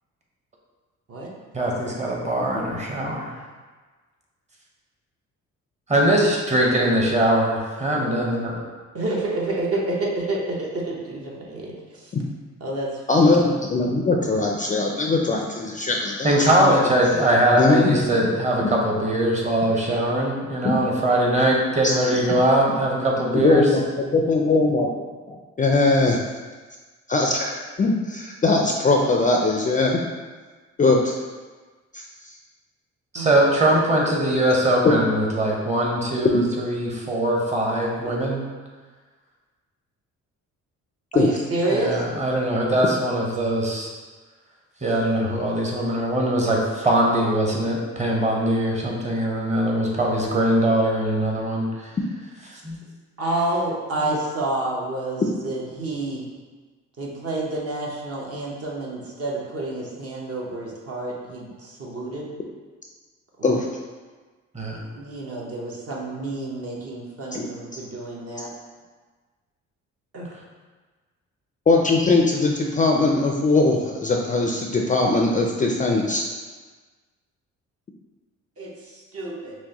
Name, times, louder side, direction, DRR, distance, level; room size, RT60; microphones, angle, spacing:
voice 1, 1.5-3.3 5.9-8.6 16.2-23.7 33.1-38.4 41.7-43.9 44.8-51.7 52.6-52.8 64.5-64.8, right 1 dB, 25° right, -2 dB, 0.9 m, -21 dB
voice 2, 8.9-12.1 12.6-13.3 33.1-33.3 41.1-42.0 53.2-56.2 57.0-62.3 63.4-63.6 64.9-68.5 70.1-70.3 78.6-79.6, right 2 dB, 50° right, -3 dB, 1.0 m, -29 dB
voice 3, 13.1-16.7 17.6-18.0 18.6-18.7 20.6-20.7 21.8-21.9 23.3-23.9 24.1-26.2 27.1-30.0 30.8-31.2 31.9-32.0 34.8-35.0 41.1-41.3 63.4-63.7 67.3-67.5 71.7-76.2, left 3 dB, 25° left, 0 dB, 0.4 m, -20 dB
5.9 x 2.2 x 2.9 m, 1.4 s
cardioid pair, 90°, 30 cm